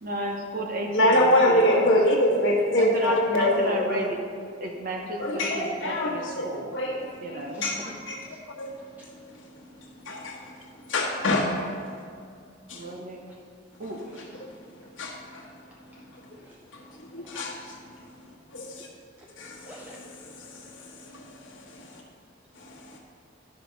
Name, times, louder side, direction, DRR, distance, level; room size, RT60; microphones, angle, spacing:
voice 1, 0.0-1.9 2.7-4.2 4.6-6.7 7.2-7.6 12.7-13.2 13.8-14.1, right 1 dB, 50° right, 0 dB, 1.0 m, -33 dB
voice 2, 0.9-4.0 5.2-6.5 6.7-7.0 7.6-8.2 8.6-8.7 10.1-10.4 10.9-11.6 12.7-12.8 15.0-15.4 17.1-17.5 18.5-18.9 19.4-19.6 21.1-21.2, left 1 dB, 80° left, -3 dB, 1.4 m, -23 dB
voice 3, 7.5-8.0 8.3-8.4 14.1-14.5 16.4-16.6 17.2-17.4 19.6-20.0, equal, 10° right, -2 dB, 0.5 m, -45 dB
12.0 x 5.1 x 3.9 m, 2.3 s
head